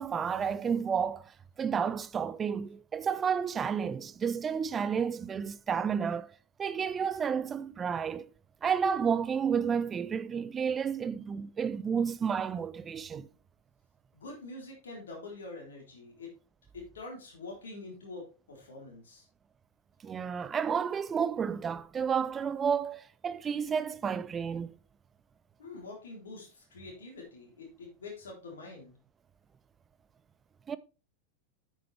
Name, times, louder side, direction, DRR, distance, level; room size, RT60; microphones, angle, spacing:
voice 1, 0.0-6.3 6.6-8.3 8.6-13.3 20.0-24.8 30.7-30.8, right 7 dB, 20° right, 0.5 m, -31 dB
voice 2, 14.1-16.3 16.7-19.2 25.6-29.0, left 3 dB, 65° left, 3.6 m, -45 dB
8.7 x 8.0 x 3.3 m
figure-of-eight pair, 90°, 0 cm